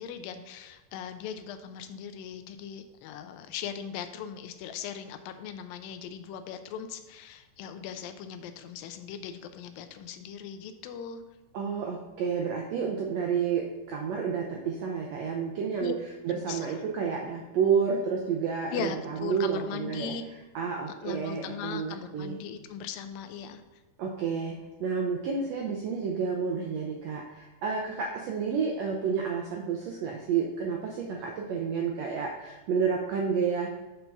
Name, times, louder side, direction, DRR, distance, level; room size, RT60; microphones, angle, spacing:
voice 1, 0.0-11.2 15.8-15.9 16.4-16.7 18.7-20.2 21.0-23.6, left 7 dB, 85° left, 8 dB, 2.4 m, -39 dB
voice 2, 11.5-15.9 16.2-20.1 20.5-22.4 24.0-33.7, right 6 dB, 80° right, 0 dB, 1.5 m, -30 dB
7.9 x 4.5 x 5.4 m, 1.2 s
omnidirectional pair, 4.0 m